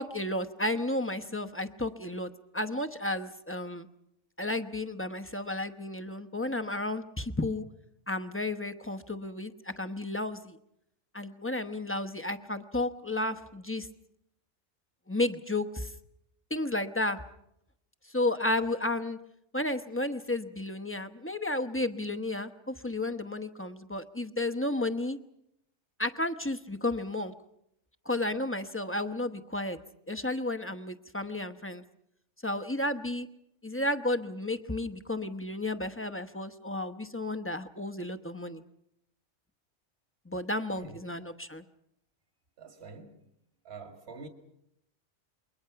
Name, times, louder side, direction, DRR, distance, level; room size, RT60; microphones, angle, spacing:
voice 1, 0.0-3.9 4.4-7.6 8.1-10.6 11.1-13.9 15.1-15.9 16.5-17.2 18.1-19.2 19.5-25.2 26.0-27.3 28.0-29.8 30.1-31.8 32.4-33.3 33.6-38.6 40.3-41.6, left 1 dB, 10° left, 0.9 m, -32 dB
voice 2, 42.6-43.2 43.6-44.3, right 4 dB, 60° right, 2.2 m, -46 dB
28.0 x 22.5 x 5.8 m
omnidirectional pair, 1.2 m